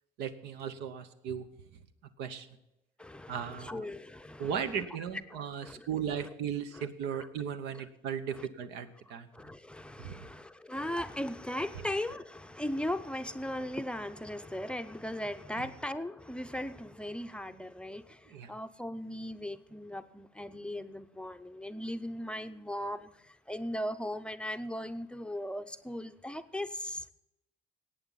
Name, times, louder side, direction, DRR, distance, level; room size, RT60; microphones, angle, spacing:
voice 1, 0.2-1.4 2.2-2.5 3.3-3.9 4.4-9.3 10.0-10.3 15.5-15.7 18.3-18.5, right 8 dB, 90° right, 10 dB, 1.0 m, -37 dB
voice 2, 3.0-4.8 5.3-5.9 6.2-6.3 6.7-6.9 7.1-7.3 7.7-7.9 8.3-8.5 9.3-27.1, left 1 dB, 5° left, 9 dB, 0.5 m, -38 dB
18.0 x 8.8 x 4.0 m, 0.89 s
cardioid pair, 110°, 17 cm